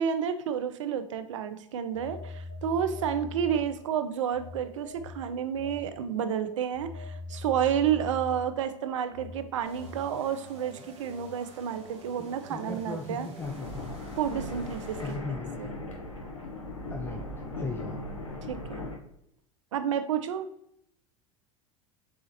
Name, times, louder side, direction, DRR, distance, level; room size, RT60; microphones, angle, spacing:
voice 1, 0.0-13.3 14.2-15.8 18.5-18.9 19.7-20.5, right 8 dB, 70° right, 10 dB, 0.4 m, -30 dB
Telephone, 1.9-3.9 4.3-10.1, left 2 dB, 45° left, 1.1 m, -42 dB
sound 1, 9.6-15.2, right 5 dB, 40° right, 1.1 m, -49 dB
voice 2, 12.2-14.0 15.0-15.7 16.9-18.0, left 3 dB, 15° left, 3 dB, 0.3 m, -38 dB
sound 2, 13.4-19.0, left 2 dB, 80° left, 0.9 m, -38 dB
4.1 x 3.6 x 2.9 m, 0.76 s
figure-of-eight pair, 80°, 17 cm